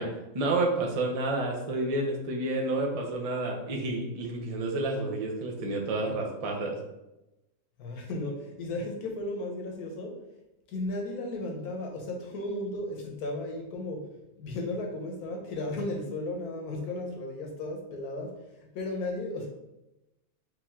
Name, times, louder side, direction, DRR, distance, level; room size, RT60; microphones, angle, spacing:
voice 1, 0.0-6.8, right 2 dB, 35° right, 0 dB, 0.6 m, -30 dB
voice 2, 7.8-10.1 10.7-14.1 14.4-19.5, left 2 dB, 75° left, 2 dB, 1.4 m, -35 dB
5.0 x 2.9 x 3.6 m, 0.95 s
omnidirectional pair, 1.6 m